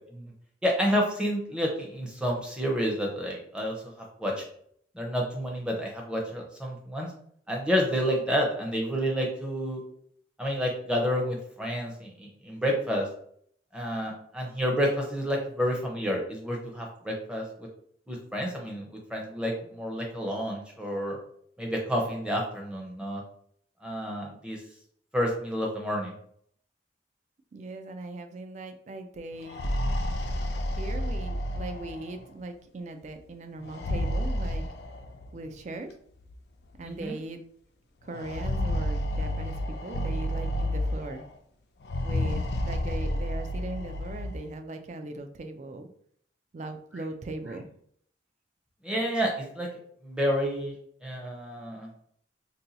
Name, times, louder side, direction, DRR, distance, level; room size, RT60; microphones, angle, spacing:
voice 1, 0.6-4.4 4.9-7.1 7.5-9.8 10.4-13.1 13.7-17.7 18.1-21.2 21.6-23.2 23.8-24.6 25.1-26.1 36.8-37.2 48.8-49.7 50.0-50.8 51.0-51.9, equal, 5° right, -1 dB, 0.6 m, -29 dB
voice 2, 27.5-29.7 30.8-34.6 35.3-35.9 36.8-37.4 38.0-41.2 42.0-45.9 46.5-47.7, right 2 dB, 40° right, 6 dB, 0.3 m, -39 dB
sound 1, 29.3-32.2 33.6-35.3 36.3-36.4 36.7-36.8 38.1-41.3 41.8-44.4, left 1 dB, 65° left, 0.4 m, -30 dB
2.7 x 2.3 x 3.9 m, 0.64 s
head